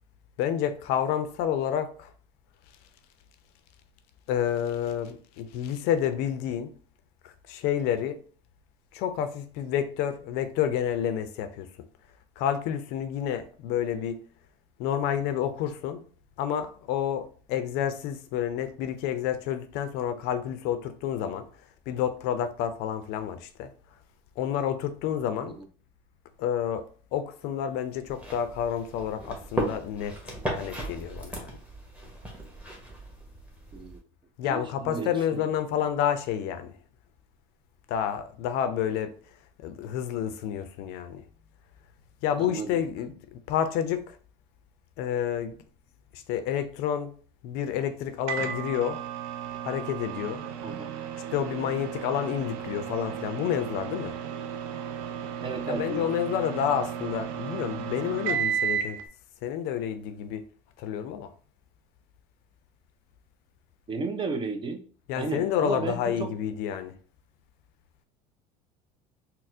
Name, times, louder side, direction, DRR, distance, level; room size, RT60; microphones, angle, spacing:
voice 1, 0.4-2.1 4.3-6.7 7.2-8.2 8.9-11.7 12.4-14.2 14.8-16.0 16.4-21.5 21.9-23.7 24.4-25.6 26.4-26.8 27.1-31.6 34.4-36.7 37.9-39.1 39.6-41.2 42.2-44.2 45.0-45.6 46.1-47.1 47.4-49.0 49.6-50.4 51.3-54.1 55.7-59.0 59.4-60.5 60.8-61.3 65.1-66.9, left 9 dB, 65° left, 0.4 m, -29 dB
sound 1, 28.0-34.0, right 1 dB, 5° right, 1.0 m, -36 dB
voice 2, 34.4-35.5 42.4-42.8 50.6-50.9 55.4-56.1 63.9-64.8 65.2-66.3, right 4 dB, 30° right, 0.6 m, -34 dB
Microwave oven, 48.3-59.0, right 8 dB, 75° right, 0.4 m, -34 dB
4.1 x 2.0 x 2.5 m
supercardioid pair, 95°, 18 cm